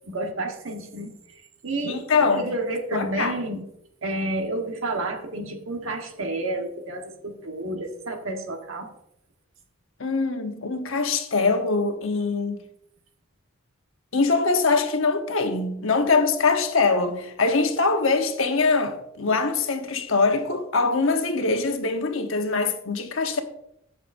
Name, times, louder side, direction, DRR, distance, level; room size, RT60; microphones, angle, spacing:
voice 1, 0.1-1.1 1.6-3.6 4.0-8.9, right 2 dB, 65° right, 1.4 m, -30 dB
voice 2, 1.8-2.5 2.9-3.3 10.0-12.6 14.1-23.4, left 4 dB, 65° left, 1.1 m, -23 dB
15.0 x 6.6 x 2.6 m
head